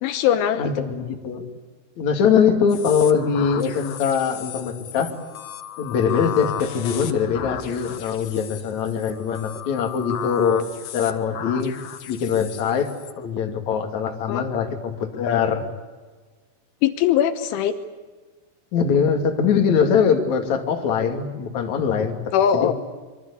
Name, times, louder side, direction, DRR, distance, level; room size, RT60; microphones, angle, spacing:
voice 1, 0.0-0.8 14.3-14.4 16.8-17.7 22.3-22.7, left 10 dB, 80° left, 9 dB, 3.5 m, -21 dB
voice 2, 0.6-1.4 2.0-5.1 5.8-10.6 10.9-11.7 12.1-12.9 13.2-15.7 18.7-22.2 22.5-22.7, left 6 dB, 45° left, 4 dB, 3.3 m, -22 dB
sound 1, 2.7-13.1, left 9 dB, 60° left, 2.5 m, -35 dB
27.0 x 23.5 x 8.6 m, 1.4 s
omnidirectional pair, 5.6 m